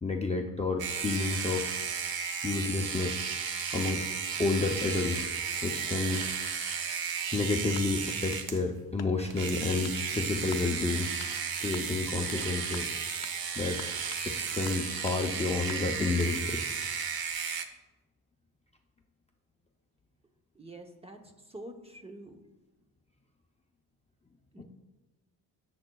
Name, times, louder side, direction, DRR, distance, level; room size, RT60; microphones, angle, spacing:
voice 1, 0.0-1.8 2.4-3.3 3.7-4.0 4.4-5.3 5.6-6.2 7.3-11.1 11.6-12.9 13.6-13.8 14.2-16.6 24.6-24.7, left 3 dB, 20° left, 1 dB, 0.5 m, -30 dB
sound 1, 0.8-8.6 9.3-17.6, right 6 dB, 70° right, 0.8 m, -34 dB
sound 2, 7.7-8.5 9.0-9.4 9.8-10.0 10.5-10.7 11.2-11.4 11.7-12.5 12.7-12.9 13.2-13.4 13.8-14.3 14.6-15.2 15.7-16.4, left 9 dB, 60° left, 0.6 m, -47 dB
voice 2, 20.5-21.2 21.5-22.4 24.5-24.6, right 1 dB, 15° right, 4 dB, 0.7 m, -46 dB
17.0 x 7.6 x 2.3 m, 1.1 s
wide cardioid pair, 170°, 38 cm